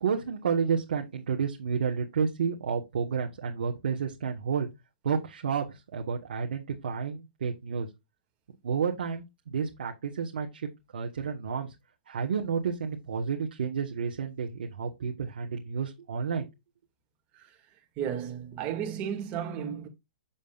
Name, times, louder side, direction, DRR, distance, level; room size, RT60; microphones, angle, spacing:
voice 1, 0.0-4.7 5.0-7.9 8.6-11.7 12.1-16.5, right 6 dB, 80° right, 1.5 m, -31 dB
voice 2, 18.0-19.9, right 8 dB, 30° right, 2.3 m, -33 dB
7.3 x 6.9 x 2.5 m
hypercardioid pair, 145°, 5 cm